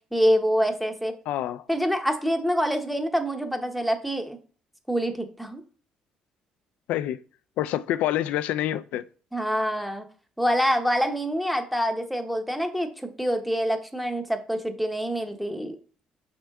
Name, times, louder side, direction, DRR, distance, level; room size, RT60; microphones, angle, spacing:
voice 1, 0.1-1.1 1.7-4.4 4.9-5.6 9.3-10.0 10.4-15.8, equal, ahead, 0.8 m, -26 dB
voice 2, 1.3-1.6 6.9-7.2 7.6-9.0, left 13 dB, 80° left, 0.4 m, -27 dB
6.2 x 4.4 x 3.5 m
cardioid pair, 105°, 2 cm